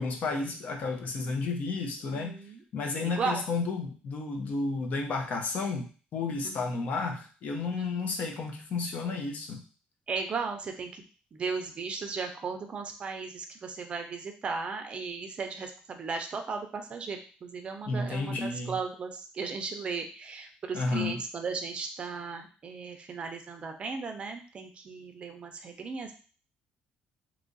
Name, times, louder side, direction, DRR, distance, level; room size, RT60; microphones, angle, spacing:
voice 1, 0.0-2.4 2.7-9.6 17.9-18.8 20.7-21.2, left 3 dB, 50° left, 3 dB, 0.7 m, -32 dB
voice 2, 2.0-2.6 3.0-3.4 6.4-6.7 7.7-8.1 10.1-11.0 11.3-26.1, right 5 dB, 35° right, 5 dB, 0.5 m, -36 dB
3.0 x 2.4 x 3.8 m, 0.38 s
cardioid pair, 140°, 3 cm